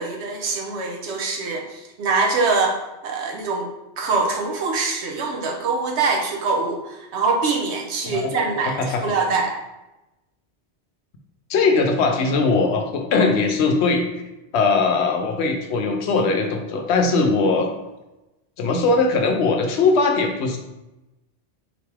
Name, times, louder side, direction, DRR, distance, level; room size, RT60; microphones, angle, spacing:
voice 1, 0.0-2.8 3.0-3.7 4.0-9.6, right 4 dB, 80° right, 1 dB, 0.9 m, -24 dB
voice 2, 8.1-8.4 8.8-9.0 11.5-14.1 14.5-17.7 18.6-20.6, left 3 dB, 75° left, 4 dB, 0.8 m, -20 dB
4.0 x 3.4 x 3.2 m, 1.0 s
omnidirectional pair, 1.1 m